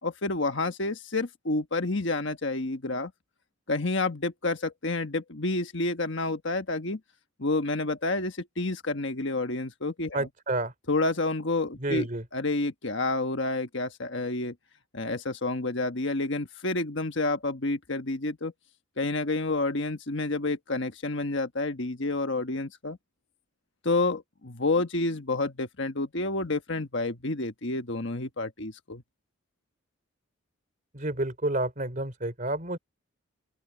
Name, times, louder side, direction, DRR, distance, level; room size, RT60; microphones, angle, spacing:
voice 1, 0.0-3.1 3.7-7.0 7.4-10.3 10.9-14.5 14.9-18.5 19.0-23.0 23.8-29.0, left 2 dB, 55° left, 1.4 m, -29 dB
voice 2, 10.1-10.7 11.8-12.2 30.9-32.8, right 2 dB, 40° right, 3.5 m, -29 dB
open air
head